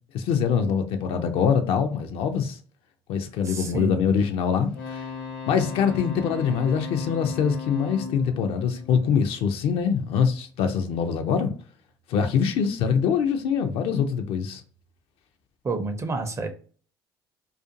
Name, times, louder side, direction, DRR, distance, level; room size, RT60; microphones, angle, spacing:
voice 1, 0.1-2.6 3.1-5.0 5.5-11.5 12.1-14.6, left 7 dB, 55° left, 0.4 m, -24 dB
voice 2, 3.4-4.0 15.6-16.5, right 3 dB, 25° right, 0.5 m, -29 dB
sound 1, 4.7-9.7 12.5-12.6, left 5 dB, 80° left, 1.0 m, -37 dB
2.4 x 2.4 x 2.6 m
figure-of-eight pair, 55°, 12 cm